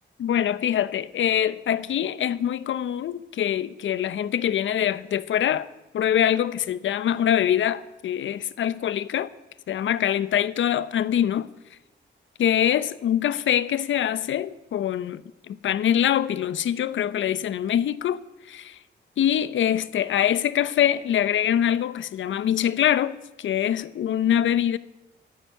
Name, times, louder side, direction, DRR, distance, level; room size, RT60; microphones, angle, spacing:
voice 1, 0.2-5.7 5.9-9.3 9.7-11.5 12.4-15.2 15.5-18.2 18.5-18.8 19.2-24.8, left 10 dB, 80° left, 0.7 m, -24 dB
11.5 x 10.0 x 9.3 m
wide cardioid pair, 160°, 19 cm